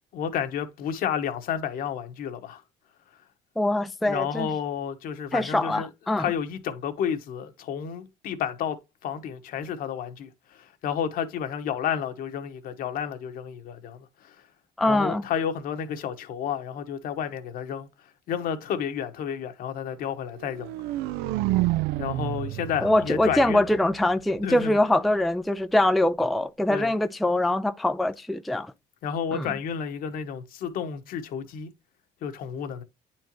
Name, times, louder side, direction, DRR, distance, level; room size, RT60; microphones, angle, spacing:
voice 1, 0.1-2.6 4.0-5.9 6.2-14.4 14.9-17.9 18.3-20.7 22.0-23.6 24.4-24.8 26.7-26.9 29.0-31.7 32.2-32.8, left 8 dB, 65° left, 1.2 m, -31 dB
voice 2, 3.6-4.5 5.3-6.3 14.8-15.2 22.8-28.7 29.3-29.5, left 1 dB, ahead, 0.3 m, -23 dB
sound 1, 20.4-24.4, right 17 dB, 85° right, 0.4 m, -29 dB
9.3 x 4.4 x 3.0 m
cardioid pair, 110°, 16 cm